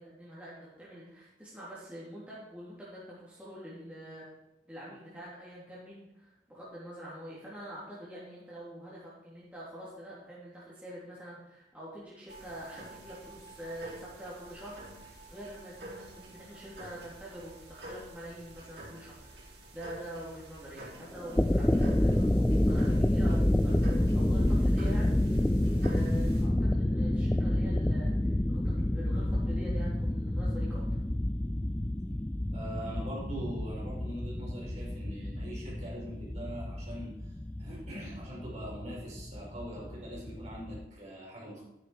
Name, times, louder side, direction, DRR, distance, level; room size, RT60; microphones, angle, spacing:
voice 1, 0.0-4.3 4.7-25.2 25.8-31.0, equal, 10° right, -8 dB, 3.1 m, -45 dB
sound 1, 12.3-26.4, right 1 dB, 70° right, 4.2 m, -49 dB
sound 2, 21.2-40.9, left 1 dB, 10° left, 0.4 m, -29 dB
voice 2, 32.5-37.3 37.6-41.6, right 1 dB, 40° right, -5 dB, 5.1 m, -42 dB
13.0 x 9.7 x 4.9 m, 0.89 s
head